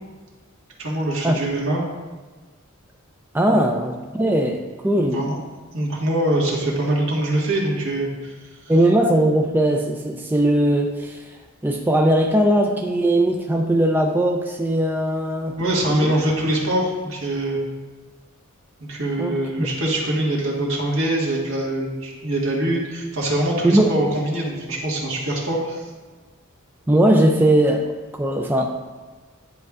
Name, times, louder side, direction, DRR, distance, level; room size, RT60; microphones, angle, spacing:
voice 1, 0.8-1.8 5.0-5.4 5.7-8.3 15.6-17.6 18.8-25.9, right 1 dB, 70° right, -4 dB, 1.6 m, -23 dB
voice 2, 3.3-5.2 8.7-11.4 11.6-15.6 15.9-16.1 19.2-19.7 23.6-23.9 26.9-28.7, right 1 dB, 10° right, 2 dB, 0.3 m, -19 dB
10.0 x 5.0 x 2.4 m, 1.3 s
head